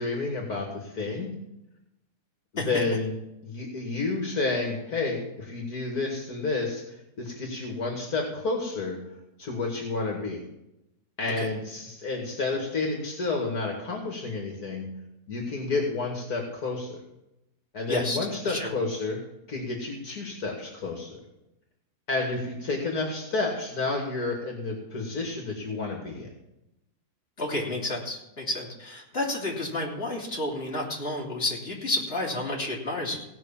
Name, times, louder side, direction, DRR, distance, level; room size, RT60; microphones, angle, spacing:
voice 1, 0.0-1.3 2.6-3.1 3.4-9.0 9.4-10.4 11.2-14.9 15.3-17.0 17.7-19.2 19.5-21.2 22.1-26.3, left 3 dB, 70° left, 1 dB, 2.6 m, -30 dB
voice 2, 17.9-18.2 18.4-18.7 27.4-33.2, left 1 dB, 35° left, -3 dB, 3.5 m, -30 dB
17.5 x 6.2 x 7.2 m, 0.88 s
omnidirectional pair, 1.7 m